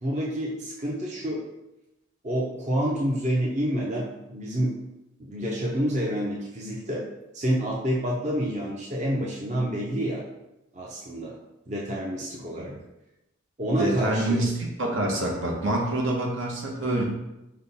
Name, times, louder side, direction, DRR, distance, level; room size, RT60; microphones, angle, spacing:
voice 1, 0.0-1.4 2.2-4.7 5.2-7.0 7.3-10.2 10.7-11.3 11.7-12.7 13.6-14.4, equal, 35° right, -3 dB, 0.6 m, -28 dB
voice 2, 13.8-17.0, right 1 dB, 75° right, -1 dB, 1.0 m, -26 dB
5.4 x 2.2 x 4.0 m, 0.94 s
head